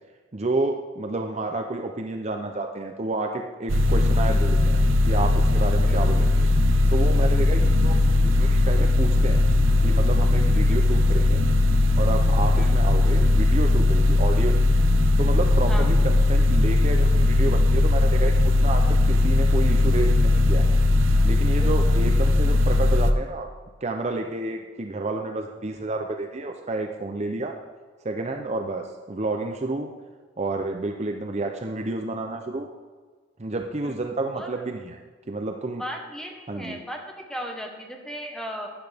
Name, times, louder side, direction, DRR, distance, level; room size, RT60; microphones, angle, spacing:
voice 1, 0.3-6.5 6.9-9.4 9.8-11.4 11.9-14.6 15.2-20.8 21.2-23.5 23.8-27.5 28.0-29.9 30.4-32.7 33.4-35.0 35.3-35.8 36.5-36.8, right 2 dB, 35° right, 4 dB, 0.6 m, -30 dB
sound 1, 3.7-23.1, left 2 dB, 80° right, 0.8 m, -19 dB
sound 2, 7.2-12.3, left 5 dB, 60° left, 1.4 m, -37 dB
voice 2, 10.3-10.8 12.6-12.7 15.7-15.9 21.6-21.9 33.8-34.0 34.3-34.5 35.8-38.7, equal, 5° left, 1 dB, 1.2 m, -36 dB
12.5 x 10.0 x 3.5 m, 1.4 s
head